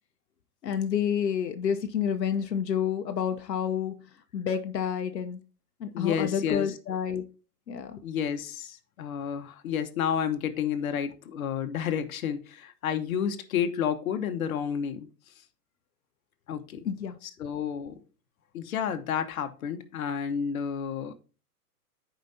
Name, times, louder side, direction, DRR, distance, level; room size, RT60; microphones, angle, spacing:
voice 1, 0.6-4.0 4.3-5.4 5.8-7.2 7.7-8.0 16.8-17.2, left 8 dB, 90° left, 0.9 m, -29 dB
voice 2, 5.9-6.7 8.0-15.1 16.5-16.8 17.2-18.0 18.5-21.1, left 8 dB, 60° left, 1.1 m, -30 dB
14.0 x 5.1 x 2.7 m
hypercardioid pair, 145°, 48 cm